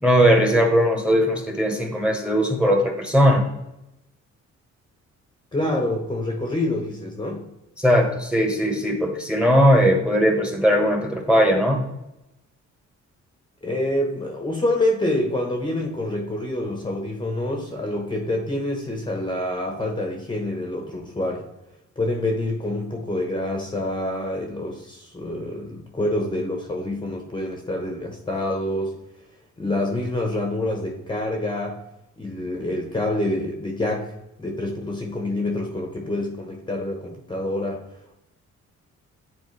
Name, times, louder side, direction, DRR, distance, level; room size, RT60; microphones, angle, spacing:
voice 1, 0.0-3.5 7.8-11.8, equal, 5° right, 3 dB, 1.2 m, -19 dB
voice 2, 5.5-7.5 13.6-21.5 22.0-29.0 29.6-31.8 32.2-38.2, left 1 dB, 15° left, 1 dB, 0.9 m, -27 dB
10.0 x 4.3 x 3.2 m, 0.89 s
cardioid pair, 135°, 29 cm